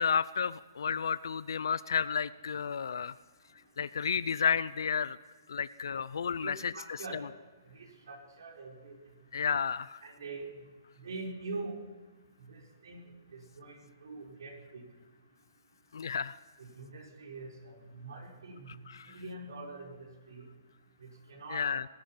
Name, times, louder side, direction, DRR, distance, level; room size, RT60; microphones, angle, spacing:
voice 1, 0.0-3.2 3.8-5.2 5.5-7.0 9.3-10.0 15.9-16.4 18.7-19.2 21.5-21.8, left 6 dB, 80° left, 16 dB, 0.4 m, -32 dB
voice 2, 6.4-7.2 7.7-8.9 10.0-10.5 11.0-11.8 12.5-13.0 13.3-14.8 16.6-18.8 19.1-20.5 21.0-21.7, right 3 dB, 75° right, 1 dB, 4.2 m, -44 dB
20.0 x 12.0 x 5.7 m, 1.3 s
hypercardioid pair, 170°, 2 cm